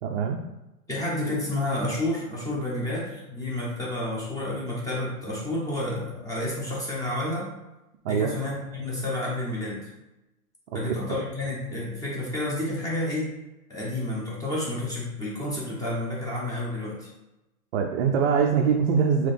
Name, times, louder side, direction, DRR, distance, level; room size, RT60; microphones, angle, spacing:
voice 1, 0.0-0.4 8.0-8.4 11.1-11.2 17.7-19.3, right 6 dB, 50° right, 1 dB, 0.5 m, -23 dB
voice 2, 0.9-7.5 8.1-9.9 10.7-13.3 13.7-17.1, left 1 dB, 10° left, -5 dB, 0.8 m, -30 dB
3.8 x 2.9 x 3.4 m, 0.98 s
hypercardioid pair, 135°, 46 cm